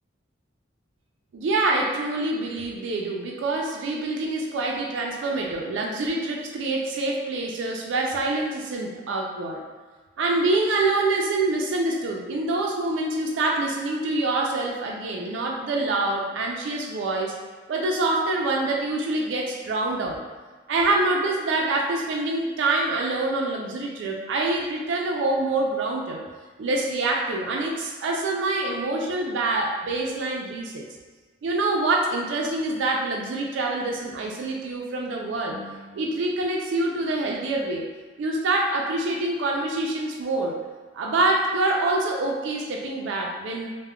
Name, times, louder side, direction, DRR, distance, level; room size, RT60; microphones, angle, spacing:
voice 1, 1.3-9.6 10.2-17.3 17.7-20.2 20.7-26.2 26.6-30.8 31.4-37.9 38.2-40.6 40.9-43.7, right 2 dB, 65° right, 0 dB, 0.3 m, -26 dB
2.2 x 2.0 x 3.5 m, 1.3 s
head